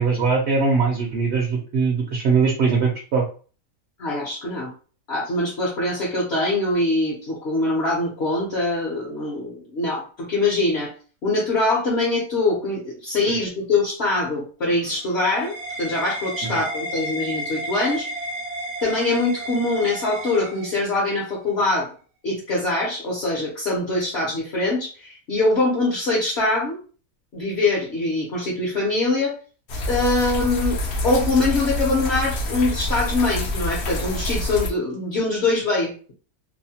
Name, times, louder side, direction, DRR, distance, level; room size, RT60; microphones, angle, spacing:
voice 1, 0.0-3.2 16.5-16.6, right 4 dB, 60° right, 0 dB, 0.8 m, -21 dB
voice 2, 4.0-4.7 5.1-10.9 11.2-18.1 18.8-21.9 22.2-26.8 27.3-29.3 29.9-30.8 31.0-36.1, left 2 dB, 55° left, -5 dB, 0.9 m, -23 dB
sound 1, 14.7-21.1, right 1 dB, 90° right, 1.1 m, -32 dB
sound 2, 29.7-34.7, left 1 dB, 70° left, 0.5 m, -27 dB
2.7 x 2.1 x 2.7 m, 0.39 s
omnidirectional pair, 1.6 m